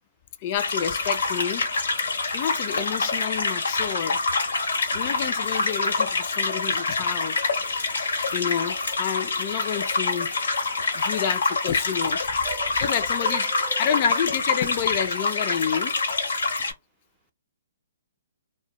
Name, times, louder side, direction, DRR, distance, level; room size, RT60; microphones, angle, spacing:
voice 1, 0.4-1.7 2.3-4.2 4.9-7.4 8.3-10.3 10.9-12.4 12.8-13.5 13.8-16.0, left 9 dB, 40° left, 0.3 m, -29 dB
sound 1, 0.6-16.7, left 3 dB, 80° left, 0.9 m, -26 dB
voice 2, 13.2-13.9, right 6 dB, 30° right, 0.5 m, -38 dB
2.1 x 2.0 x 2.8 m
hypercardioid pair, 140°, 0 cm